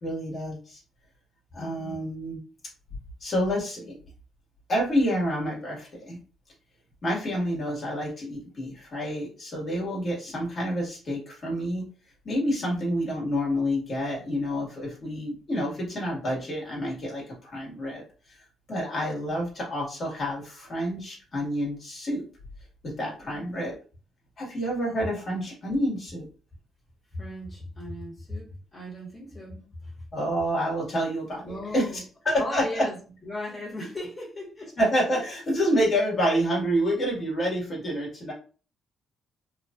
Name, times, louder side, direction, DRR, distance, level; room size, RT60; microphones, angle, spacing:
voice 1, 0.0-0.8 1.5-2.4 3.2-3.9 4.7-6.2 7.0-11.9 12.2-18.0 18.7-22.2 22.8-23.7 24.4-26.2 30.1-31.4 31.7-31.9 32.2-32.9 34.8-38.3, equal, 45° left, 1.6 m, -28 dB
voice 2, 1.6-2.0 12.6-12.8 23.2-23.6 27.1-30.0 31.4-32.0 32.4-34.8 35.1-35.3, left 1 dB, 20° left, 1.5 m, -38 dB
3.2 x 2.5 x 2.4 m
cardioid pair, 90°, 0 cm